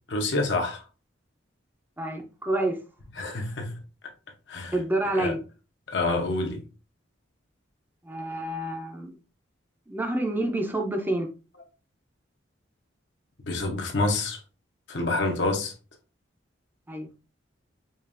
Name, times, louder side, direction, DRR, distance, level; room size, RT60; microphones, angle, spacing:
voice 1, 0.1-0.8 3.2-3.7 4.5-4.7 5.2-5.3 5.9-6.6 13.5-14.4 14.9-15.7, left 2 dB, 70° left, 0.9 m, -27 dB
voice 2, 2.0-2.8 4.7-5.4 8.0-9.1 9.9-11.3 16.9-17.2, right 1 dB, 10° right, 0.5 m, -28 dB
5.2 x 2.5 x 2.5 m
head